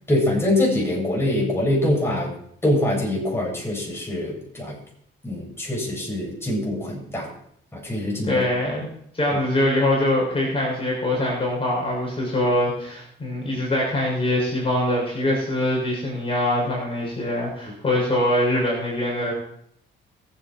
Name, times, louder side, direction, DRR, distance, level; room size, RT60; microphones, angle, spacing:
voice 1, 0.1-2.3 2.6-4.8 5.2-7.3 7.7-8.4, left 1 dB, 10° left, -2 dB, 7.9 m, -24 dB
voice 2, 8.2-8.9 9.1-19.3, left 1 dB, 30° left, -3 dB, 6.6 m, -23 dB
23.5 x 8.9 x 4.6 m, 0.67 s
cardioid pair, 90°, 20 cm